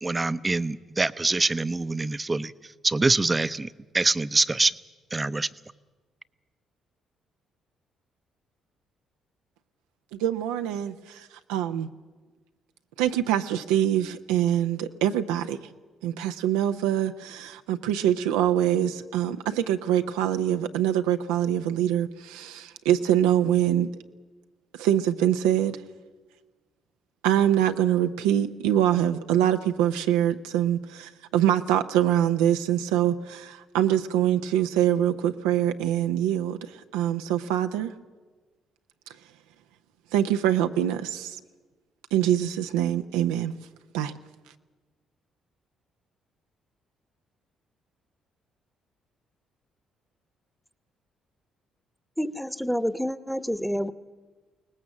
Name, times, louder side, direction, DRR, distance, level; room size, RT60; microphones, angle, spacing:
voice 1, 0.0-2.5 2.8-4.7 5.1-5.5, right 3 dB, 25° right, 15 dB, 0.7 m, -25 dB
voice 2, 10.1-11.9 13.0-15.7 16.0-23.9 24.8-25.8 27.2-37.9 40.1-41.4 42.1-43.5 43.9-44.1, right 11 dB, 85° right, 7 dB, 0.6 m, -24 dB
voice 3, 52.2-53.9, equal, ahead, 13 dB, 1.1 m, -28 dB
22.5 x 19.0 x 7.5 m, 1.3 s
hypercardioid pair, 50°, 0 cm